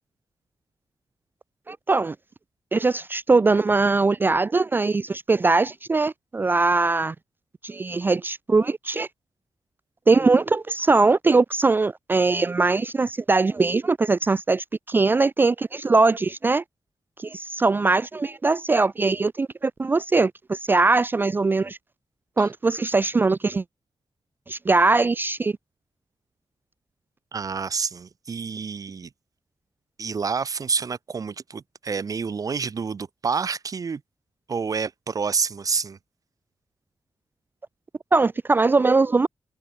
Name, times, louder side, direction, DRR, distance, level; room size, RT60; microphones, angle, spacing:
voice 1, 1.7-2.2 2.7-7.1 7.6-9.1 10.1-16.6 17.2-21.8 22.4-23.6 24.5-25.5 38.1-39.3, right 3 dB, 20° right, 0.3 m, -21 dB
voice 2, 27.3-29.1 30.0-34.0 34.5-36.0, right 5 dB, 40° right, 1.6 m, -28 dB
wide cardioid pair, 175°, 9 cm